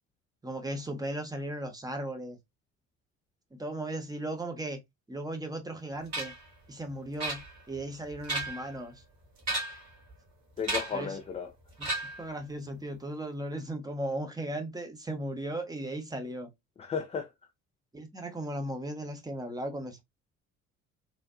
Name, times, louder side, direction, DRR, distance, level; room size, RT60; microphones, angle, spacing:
voice 1, 0.4-2.4 3.6-4.8 5.1-6.3 6.7-9.0 10.9-11.2 11.8-11.9 12.2-16.5 17.9-20.0, right 1 dB, 10° right, 0.7 m, -36 dB
sound 1, 6.1-6.5 7.2-7.8 8.1-8.7 9.4-9.9 10.6-11.1 11.8-12.3, right 2 dB, 40° right, 2.2 m, -34 dB
voice 2, 10.6-11.5 16.8-17.3, left 6 dB, 15° left, 0.4 m, -33 dB
3.1 x 2.5 x 2.4 m
figure-of-eight pair, 50°, 40 cm